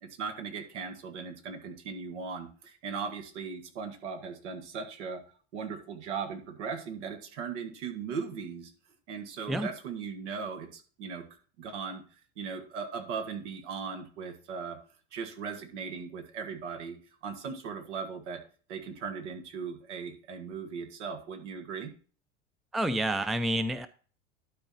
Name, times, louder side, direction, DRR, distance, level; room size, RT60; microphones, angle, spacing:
voice 1, 0.0-5.2 5.5-8.7 9.1-11.2 11.6-12.0 12.4-14.8 15.1-17.0 17.2-18.4 18.7-21.9, right 5 dB, 75° right, 6 dB, 1.8 m, -38 dB
voice 2, 22.7-23.9, right 1 dB, ahead, 13 dB, 0.4 m, -28 dB
12.0 x 4.5 x 4.1 m, 0.40 s
hypercardioid pair, 90°, 36 cm